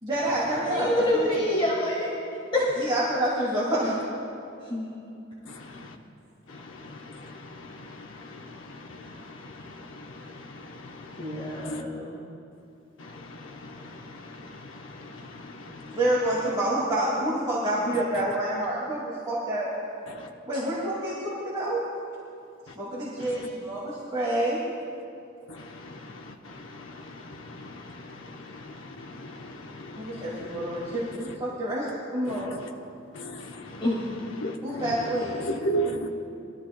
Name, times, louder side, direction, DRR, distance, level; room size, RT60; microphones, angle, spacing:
voice 1, 0.0-1.6 2.8-4.0 15.9-19.7 20.5-21.8 22.8-24.6 30.0-32.5 34.6-35.5, right 1 dB, 25° right, 2.3 m, -28 dB
voice 2, 0.7-2.1 2.5-2.9 4.6-4.9 11.2-12.2 20.5-20.6 33.8-34.0, left 1 dB, 25° left, 1.7 m, -27 dB
voice 3, 29.0-29.5 29.8-30.0 32.5-32.6 33.2-33.8 34.4-34.8 35.4-36.1, right 2 dB, 75° left, 0.9 m, -32 dB
21.0 x 13.0 x 2.3 m
head